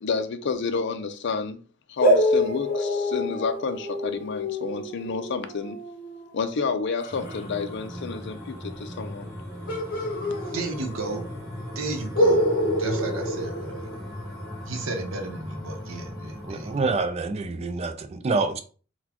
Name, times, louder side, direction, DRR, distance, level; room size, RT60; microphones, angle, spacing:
voice 1, 0.0-1.6 1.9-5.8 6.3-9.3, left 5 dB, 60° left, 0.4 m, -30 dB
sound 1, 2.0-7.4 9.7-11.1 11.4-11.5 12.1-14.3, equal, 45° left, 1.0 m, -26 dB
sound 2, 7.1-17.0, equal, 20° left, 1.4 m, -38 dB
voice 2, 10.5-11.2 11.7-12.5 12.8-13.9 14.6-16.7, right 3 dB, 80° right, 0.8 m, -33 dB
voice 3, 16.4-18.6, right 3 dB, 30° right, 0.4 m, -27 dB
4.1 x 2.2 x 2.9 m
head